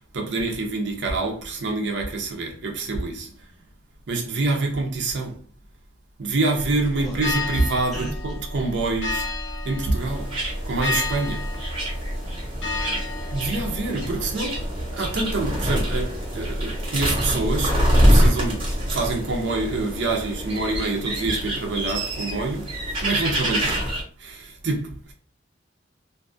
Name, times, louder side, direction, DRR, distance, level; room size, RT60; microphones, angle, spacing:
voice 1, 0.1-3.3 4.1-5.4 6.2-9.3 9.6-10.3 10.6-11.4 13.3-17.8 18.1-22.7 23.0-23.8 24.2-25.1, right 3 dB, 65° right, 0.6 m, -26 dB
sound 1, 6.6-19.4, left 1 dB, 85° left, 0.7 m, -32 dB
sound 2, 10.0-24.0, equal, 30° right, 0.9 m, -25 dB
voice 2, 12.5-13.0, equal, ahead, 0.8 m, -39 dB
2.5 x 2.3 x 2.5 m
head